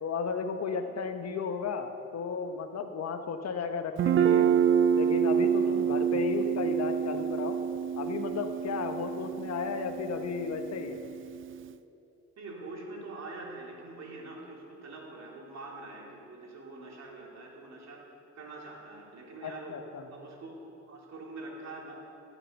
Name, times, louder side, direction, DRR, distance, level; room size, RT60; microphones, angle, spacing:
voice 1, 0.0-4.5 4.9-7.6 8.0-11.0 19.4-20.1, left 5 dB, 60° left, 7 dB, 1.1 m, -34 dB
Guitar, 4.0-11.7, right 8 dB, 45° right, 0.4 m, -27 dB
voice 2, 5.5-5.9 8.7-8.9 12.4-18.0 18.3-19.8 20.1-20.6 20.9-22.0, right 2 dB, 60° right, -2 dB, 3.2 m, -44 dB
17.0 x 7.5 x 6.9 m, 2.8 s
cardioid pair, 90°, 30 cm